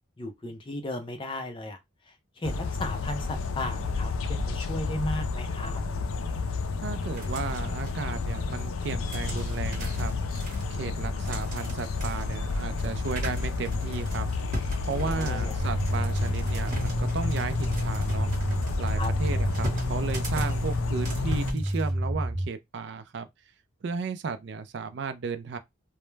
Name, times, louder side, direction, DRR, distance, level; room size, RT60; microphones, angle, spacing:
voice 1, 0.2-1.8 2.1-5.8 14.9-15.6 19.0-19.1, left 1 dB, 25° left, 0.4 m, -35 dB
sound 1, 2.4-21.5, left 4 dB, 85° left, 0.4 m, -31 dB
voice 2, 6.8-10.2 10.7-14.3 14.8-18.3 18.8-23.3 23.8-25.6, right 5 dB, 55° right, 0.3 m, -34 dB
sound 2, 7.1-8.2 8.5-21.9, equal, 40° right, 1.0 m, -39 dB
sound 3, 15.6-22.4, equal, ahead, 0.8 m, -30 dB
2.2 x 2.0 x 3.1 m
head